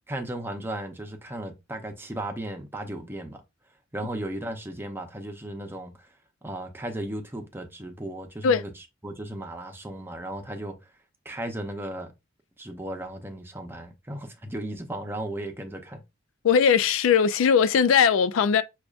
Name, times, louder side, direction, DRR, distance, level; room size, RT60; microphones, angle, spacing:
voice 1, 0.1-3.4 3.9-6.1 6.4-10.8 11.2-12.1 12.6-16.0, right 1 dB, 10° right, 0.6 m, -35 dB
voice 2, 16.4-18.6, left 7 dB, 80° left, 0.3 m, -19 dB
6.2 x 2.4 x 2.3 m
head